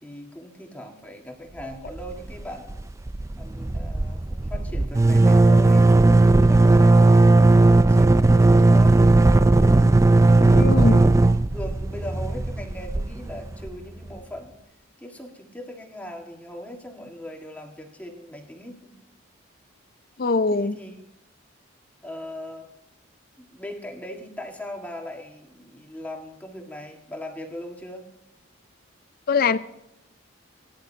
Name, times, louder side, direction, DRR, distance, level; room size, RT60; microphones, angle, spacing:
voice 1, 0.0-2.8 3.4-7.1 7.6-9.1 9.6-9.9 10.3-14.5 15.0-18.9 20.5-21.0 22.0-22.7 23.4-28.1, left 1 dB, 10° left, 1.7 m, -39 dB
sound 1, 1.9-2.4 2.7-2.8 3.1-13.7, right 2 dB, 15° right, 0.3 m, -16 dB
voice 2, 10.4-11.0 20.2-20.7 29.3-29.6, left 4 dB, 45° left, 0.5 m, -22 dB
19.0 x 11.0 x 2.8 m
head